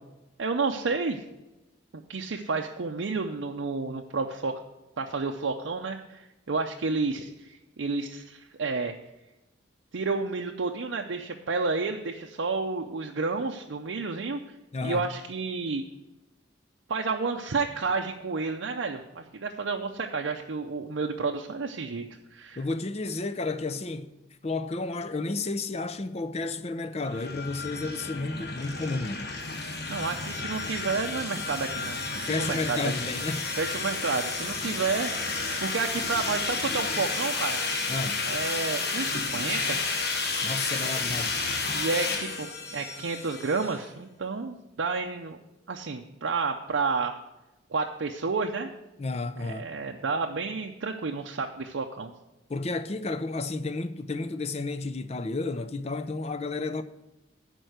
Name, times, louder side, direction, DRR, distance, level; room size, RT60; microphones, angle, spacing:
voice 1, 0.4-1.2 2.1-4.6 5.0-8.9 9.9-14.4 14.8-15.8 16.9-22.0 22.3-22.6 29.9-33.1 33.6-35.1 35.6-37.6 38.2-39.9 41.7-45.4 45.7-47.2 47.7-48.7 49.4-52.1, right 4 dB, 75° right, 0.6 m, -30 dB
voice 2, 14.7-15.0 22.6-24.1 24.4-29.3 32.2-33.5 37.9-38.2 40.4-41.3 49.0-49.7 52.5-56.8, left 3 dB, 35° left, 0.5 m, -32 dB
sound 1, 27.0-43.8, left 3 dB, 55° left, 1.4 m, -31 dB
11.0 x 4.5 x 7.9 m
head